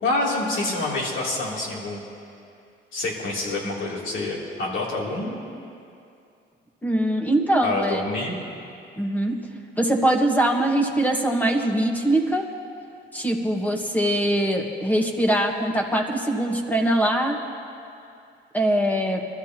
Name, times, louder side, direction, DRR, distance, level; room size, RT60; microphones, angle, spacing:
voice 1, 0.0-2.0 2.9-5.4 7.6-8.4, left 2 dB, 75° left, -4 dB, 3.2 m, -27 dB
voice 2, 6.8-8.0 9.0-9.4 9.8-12.5 13.1-17.4 18.5-19.3, right 1 dB, 10° left, 2 dB, 1.6 m, -22 dB
22.0 x 12.5 x 3.0 m, 2.5 s
cardioid pair, 90°, 20 cm